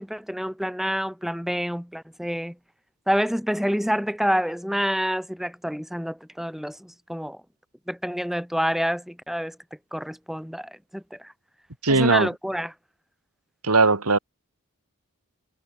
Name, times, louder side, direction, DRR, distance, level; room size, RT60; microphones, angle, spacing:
voice 1, 0.0-2.5 3.1-7.4 7.9-9.6 9.9-11.2 11.9-12.7, equal, ahead, 5.9 m, -27 dB
voice 2, 11.8-12.3 13.6-14.2, right 3 dB, 80° right, 2.7 m, -19 dB
head